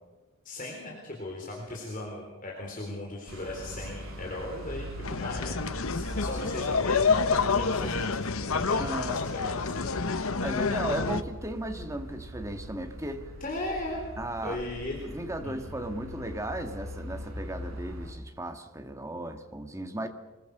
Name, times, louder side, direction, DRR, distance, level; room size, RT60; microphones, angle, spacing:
voice 1, 0.4-5.5 5.9-9.8 13.4-14.1 14.4-15.0 15.4-15.6, left 1 dB, 40° left, 0 dB, 4.0 m, -38 dB
sound 1, 3.3-18.1, equal, 70° right, 4.2 m, -42 dB
sound 2, 5.0-11.2, left 4 dB, 75° left, 1.0 m, -28 dB
voice 2, 8.8-9.5 10.4-13.3 14.2-14.6 15.0-20.1, right 1 dB, 15° right, 6 dB, 1.7 m, -36 dB
24.5 x 21.5 x 6.7 m, 1.2 s
head